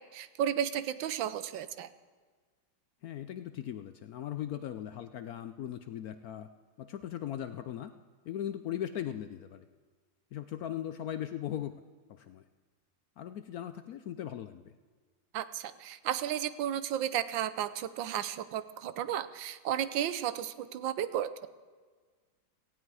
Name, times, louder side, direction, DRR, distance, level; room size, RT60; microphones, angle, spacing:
voice 1, 0.1-1.9 15.3-21.5, right 10 dB, 80° right, 13 dB, 1.5 m, -33 dB
voice 2, 3.0-6.5 6.8-7.9 8.2-9.6 10.3-11.7 12.1-12.4 13.2-14.7, left 11 dB, 70° left, 10 dB, 0.9 m, -38 dB
17.5 x 15.5 x 4.8 m, 1.5 s
omnidirectional pair, 2.0 m